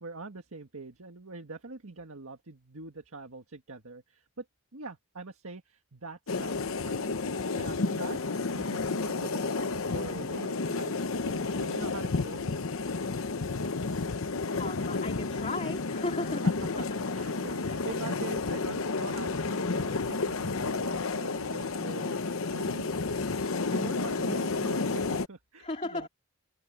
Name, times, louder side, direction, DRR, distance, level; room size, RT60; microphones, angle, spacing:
voice 1, 0.0-4.4 4.7-7.2 7.6-8.2 8.5-12.5 16.4-16.5 16.8-22.2 22.5-22.9 23.7-26.1, right 3 dB, 80° right, 1.7 m, -44 dB
sound 1, 6.3-25.3, left 3 dB, 75° left, 0.9 m, -31 dB
voice 2, 14.6-16.4 16.8-16.9 25.6-26.1, left 2 dB, 30° left, 2.4 m, -35 dB
open air
head